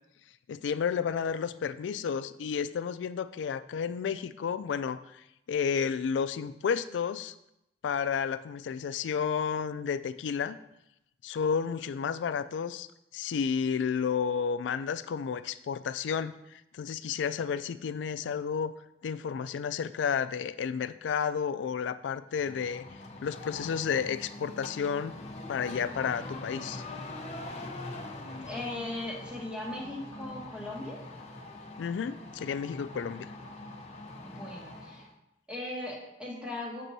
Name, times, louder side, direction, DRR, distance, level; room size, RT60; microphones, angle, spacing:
voice 1, 0.5-5.2 5.5-7.3 7.8-10.6 11.2-12.9 13.1-18.7 19.0-22.8 23.2-25.1 25.5-26.8 31.8-33.3, left 7 dB, 85° left, 13 dB, 0.3 m, -31 dB
sound 1, 22.3-35.1, left 2 dB, 40° left, 0.6 m, -43 dB
voice 2, 28.4-31.0 34.2-35.1 35.5-36.8, left 2 dB, 5° right, -2 dB, 1.2 m, -38 dB
7.4 x 5.3 x 2.7 m, 0.86 s
head